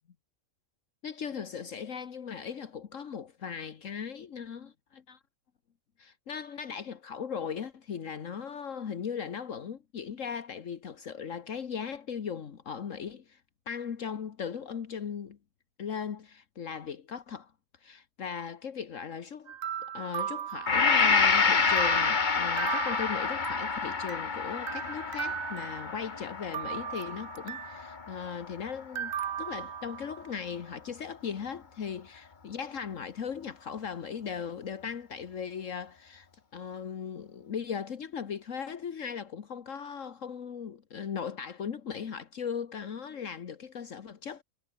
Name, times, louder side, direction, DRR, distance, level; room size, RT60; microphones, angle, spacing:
voice 1, 1.0-5.2 6.0-13.4 13.7-15.4 15.8-17.5 17.8-19.5 19.8-29.1 29.4-36.3 36.5-44.4, left 7 dB, 70° left, 1.6 m, -38 dB
sound 1, 19.5-21.3 21.8-24.3 24.7-26.1 26.5-27.9 28.9-30.4, right 9 dB, 60° right, 0.4 m, -37 dB
Gong, 20.7-28.7, left 5 dB, 35° left, 1.4 m, -28 dB
omnidirectional pair, 1.4 m